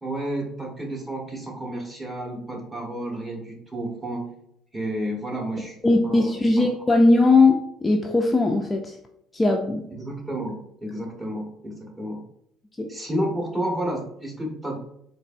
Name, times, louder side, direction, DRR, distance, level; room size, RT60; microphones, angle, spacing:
voice 1, 0.0-4.3 4.7-5.8 6.0-6.6 9.9-12.2 12.9-14.8, right 1 dB, 15° right, -1 dB, 1.4 m, -31 dB
voice 2, 5.8-9.0 9.3-9.8 12.8-12.9, left 2 dB, 15° left, 2 dB, 0.4 m, -19 dB
4.1 x 2.6 x 2.6 m, 0.75 s
supercardioid pair, 85°, 0 cm